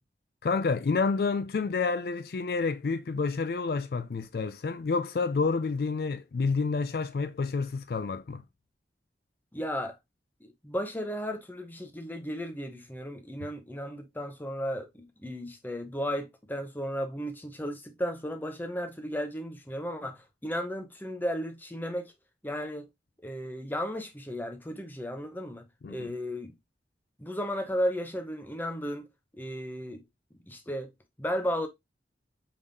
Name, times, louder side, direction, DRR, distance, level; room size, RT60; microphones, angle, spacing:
voice 1, 0.4-8.4 25.8-26.1, left 4 dB, 60° left, 0.4 m, -29 dB
voice 2, 9.5-10.0 10.4-22.1 22.4-22.9 23.2-26.5 27.2-29.1 29.3-30.0 30.5-30.9 31.2-31.7, equal, 10° left, 0.7 m, -34 dB
5.0 x 3.6 x 2.6 m
head